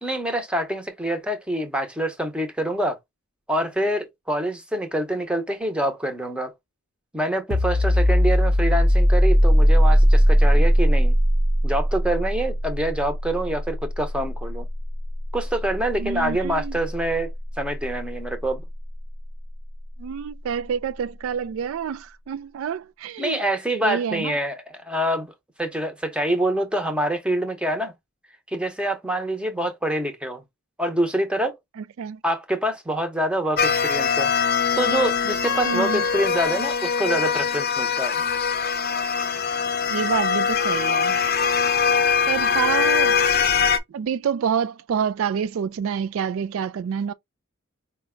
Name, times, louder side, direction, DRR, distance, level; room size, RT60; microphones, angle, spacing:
voice 1, 0.0-3.0 3.5-6.5 7.1-11.1 11.6-14.7 15.3-17.3 17.6-18.6 23.2-27.9 28.5-30.4 30.8-31.6 32.2-34.3 34.7-38.2, right 1 dB, 5° right, 0.7 m, -26 dB
sound 1, 7.5-18.9, equal, 45° right, 0.8 m, -20 dB
voice 2, 16.0-16.8 20.0-23.4 23.8-24.4 31.8-32.2 35.6-36.0 39.9-41.2 42.3-43.2 43.9-47.1, right 7 dB, 65° right, 0.3 m, -27 dB
sound 2, 33.6-43.8, left 6 dB, 45° left, 0.6 m, -22 dB
5.0 x 2.2 x 3.6 m
head